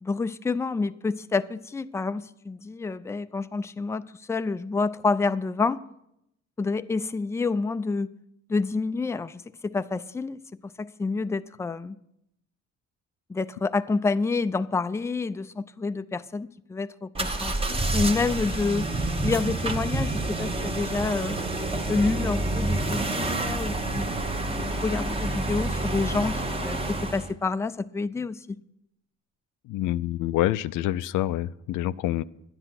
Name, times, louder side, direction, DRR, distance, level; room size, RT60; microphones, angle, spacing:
voice 1, 0.0-5.8 6.6-8.1 8.5-12.0 13.3-17.1 17.4-18.9 19.2-21.4 21.9-24.1 24.4-26.8 27.1-28.6, left 4 dB, 10° left, 0.4 m, -28 dB
sound 1, 17.1-27.3, right 2 dB, 20° right, 1.1 m, -28 dB
voice 2, 29.7-32.2, left 14 dB, 85° left, 0.5 m, -27 dB
11.5 x 10.0 x 5.9 m
cardioid pair, 90°, 30 cm